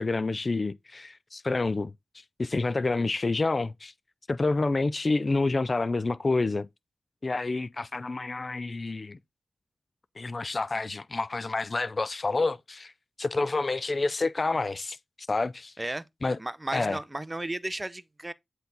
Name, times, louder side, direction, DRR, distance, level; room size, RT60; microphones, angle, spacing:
voice 1, 0.0-1.9 2.4-3.9 4.3-6.7 7.2-9.2 10.2-12.9 13.2-15.0 15.3-15.7 16.2-16.4 16.7-17.0, left 3 dB, 35° left, 0.4 m, -28 dB
voice 2, 16.4-18.3, right 1 dB, 15° right, 0.6 m, -34 dB
9.5 x 4.4 x 3.9 m
wide cardioid pair, 100°, 0 cm